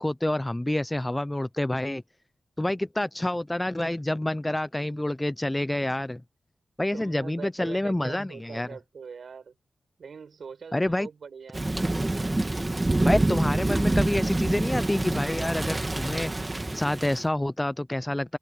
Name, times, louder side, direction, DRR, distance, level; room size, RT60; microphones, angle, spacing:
voice 1, 0.0-2.0 2.6-6.2 6.8-8.7 10.7-11.1 13.0-18.4, left 1 dB, 10° left, 0.4 m, -28 dB
voice 2, 6.9-9.5 10.0-11.6, right 6 dB, 60° right, 5.1 m, -42 dB
Thunder / Rain, 11.5-17.3, right 2 dB, 15° right, 1.7 m, -26 dB
wide cardioid pair, 155°, 0 cm